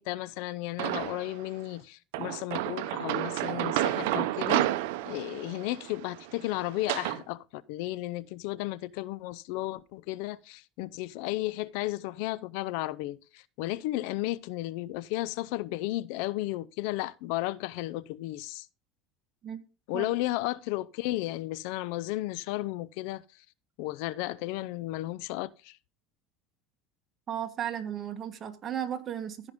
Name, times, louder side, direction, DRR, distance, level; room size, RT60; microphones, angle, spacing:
voice 1, 0.0-4.7 5.1-18.7 19.9-23.5 23.8-25.8, left 17 dB, 70° left, 0.4 m, -34 dB
sound 1, 0.8-1.4 2.1-7.2, right 15 dB, 80° right, 0.6 m, -31 dB
voice 2, 27.3-29.5, right 9 dB, 35° right, 1.4 m, -35 dB
14.0 x 5.3 x 3.6 m
supercardioid pair, 115°, 0 cm